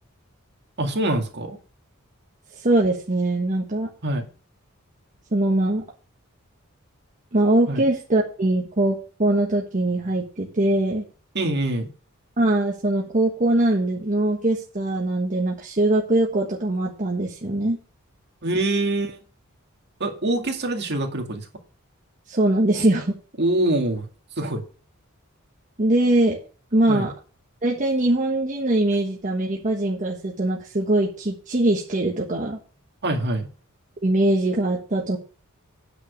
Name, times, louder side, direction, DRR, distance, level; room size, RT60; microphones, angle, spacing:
voice 1, 0.8-1.6 4.0-4.3 7.7-7.9 11.3-11.9 18.4-19.2 20.0-21.5 23.4-24.1 24.4-24.6 26.9-27.1 33.0-33.5, right 1 dB, 55° right, 3 dB, 2.1 m, -24 dB
voice 2, 2.6-3.9 5.3-5.8 7.3-11.0 12.4-17.8 22.3-23.2 25.8-26.4 26.7-27.1 27.6-32.6 34.0-35.2, right 1 dB, 35° right, -1 dB, 1.3 m, -22 dB
9.2 x 5.0 x 6.6 m, 0.38 s
head